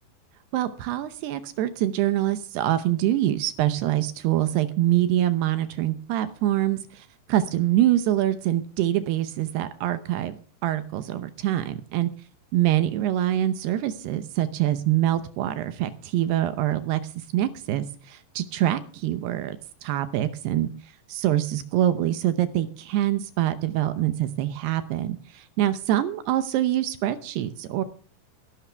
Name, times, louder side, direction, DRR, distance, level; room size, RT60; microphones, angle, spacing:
voice 1, 0.5-12.1 12.5-20.7 21.1-27.8, right 13 dB, 75° right, 11 dB, 2.7 m, -25 dB
19.5 x 12.0 x 3.4 m, 0.42 s
omnidirectional pair, 5.1 m